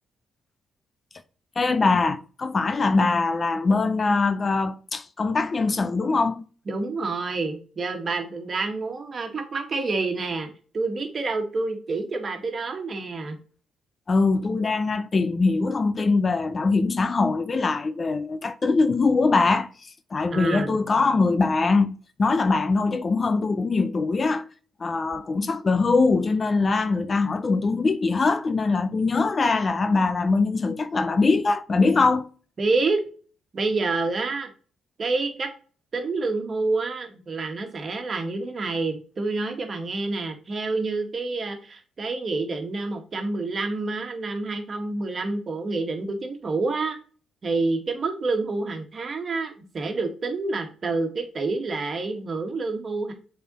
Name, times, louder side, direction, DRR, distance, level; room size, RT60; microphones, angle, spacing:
voice 1, 1.6-6.4 14.1-24.5 24.8-32.3, left 3 dB, 35° left, 0.6 m, -22 dB
voice 2, 6.7-10.5 10.7-13.4 20.3-20.8 32.6-33.0 33.5-34.5 35.0-35.5 35.9-47.0 47.4-53.1, right 3 dB, 40° right, 1.9 m, -28 dB
6.9 x 4.4 x 4.2 m
cardioid pair, 90°, 0 cm